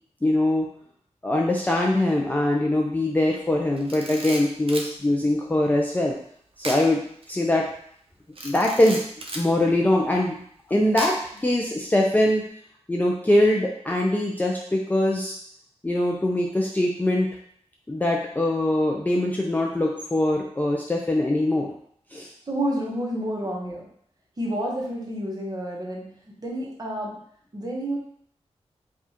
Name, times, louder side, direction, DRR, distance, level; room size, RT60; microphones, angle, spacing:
voice 1, 0.2-0.7 1.2-6.1 6.6-7.0 7.3-7.7 8.4-9.0 9.3-10.4 10.7-12.4 12.9-15.3 15.8-17.3 17.9-21.7 22.1-22.3, left 1 dB, 15° left, -1 dB, 0.4 m, -22 dB
Camera, 3.8-4.9 6.6-6.9 7.2-7.3 8.3-9.5 11.0-11.4, right 1 dB, 55° right, 0.6 m, -34 dB
voice 2, 10.7-11.1 22.5-23.9 24.4-26.1 26.4-27.2 27.5-28.0, right 1 dB, 35° right, -3 dB, 1.1 m, -30 dB
4.8 x 2.4 x 2.8 m, 0.63 s
wide cardioid pair, 95°, 12 cm